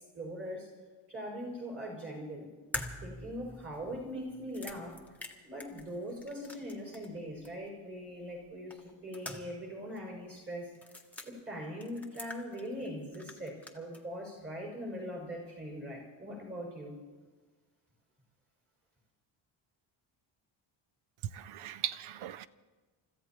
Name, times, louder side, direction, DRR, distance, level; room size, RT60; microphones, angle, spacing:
voice 1, 0.1-0.7 1.1-2.5 3.0-5.0 5.4-10.7 11.2-17.0, equal, 25° right, -1 dB, 6.3 m, -41 dB
sound 1, 2.7-7.2 7.4-7.5 8.7-9.7 10.0-10.1 10.7-11.3 11.8-12.9 13.1-14.0, left 2 dB, 5° left, 1.0 m, -44 dB
voice 2, 21.3-22.5, right 11 dB, 75° right, 16 dB, 0.7 m, -38 dB
30.0 x 14.5 x 3.1 m, 1.3 s
cardioid pair, 170°, 50 cm